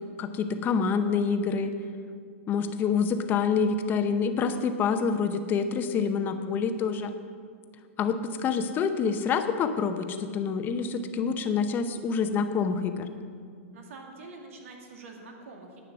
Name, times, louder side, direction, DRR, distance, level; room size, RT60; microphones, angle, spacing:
voice 1, 0.2-1.7 2.5-7.1 8.0-13.1, left 5 dB, 25° left, 8 dB, 0.8 m, -27 dB
voice 2, 13.7-15.8, right 3 dB, 70° right, 1 dB, 2.3 m, -45 dB
10.5 x 9.3 x 6.1 m, 2.2 s
hypercardioid pair, 135°, 7 cm